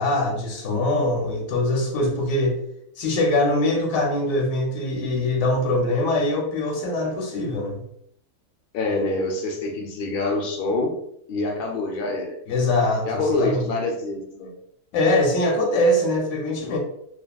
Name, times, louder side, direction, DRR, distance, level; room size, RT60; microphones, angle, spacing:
voice 1, 0.0-2.6 3.0-7.8 12.5-13.7 14.9-16.8, left 1 dB, 85° left, 1 dB, 1.0 m, -22 dB
voice 2, 8.7-10.9 11.3-12.4 13.0-14.5, left 2 dB, 65° left, 1 dB, 0.5 m, -26 dB
2.8 x 2.4 x 2.2 m, 0.73 s
omnidirectional pair, 1.4 m